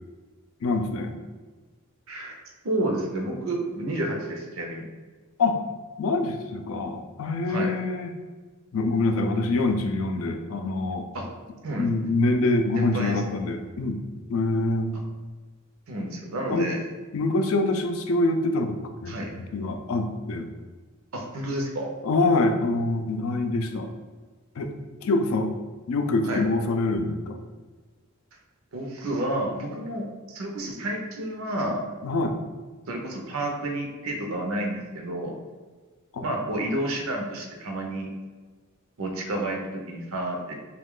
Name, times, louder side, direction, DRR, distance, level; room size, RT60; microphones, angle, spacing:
voice 1, 0.6-1.1 5.4-5.6 6.0-8.1 8.7-11.1 11.8-14.0 14.3-15.0 16.5-16.7 17.1-19.1 19.5-20.5 22.0-23.9 24.6-24.7 25.0-25.5 25.9-27.4 32.0-32.4 36.1-36.2, left 2 dB, 80° left, 6 dB, 0.4 m, -25 dB
voice 2, 2.6-4.9 7.5-7.7 11.1-11.3 11.6-11.9 12.8-13.2 15.9-16.8 19.1-19.3 21.1-21.9 26.2-26.5 28.7-31.8 32.9-35.4 36.2-38.1 39.0-40.5, right 1 dB, 80° right, 1 dB, 0.6 m, -30 dB
3.0 x 2.3 x 3.6 m, 1.4 s
head